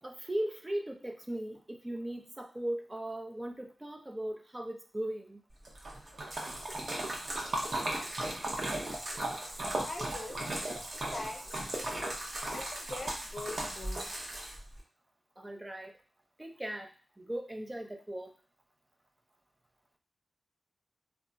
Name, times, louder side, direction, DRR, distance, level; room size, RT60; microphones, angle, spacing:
voice 1, 0.0-5.4 15.4-15.9 16.4-16.9 17.2-18.3, right 1 dB, 15° right, 4 dB, 0.3 m, -38 dB
Splash splatter, 5.7-14.8, right 1 dB, 45° right, 0.7 m, -36 dB
voice 2, 9.8-10.5 11.1-11.6 12.5-14.1, left 2 dB, 50° left, 1 dB, 0.6 m, -42 dB
2.2 x 2.0 x 3.7 m, 0.38 s
wide cardioid pair, 105°, 0 cm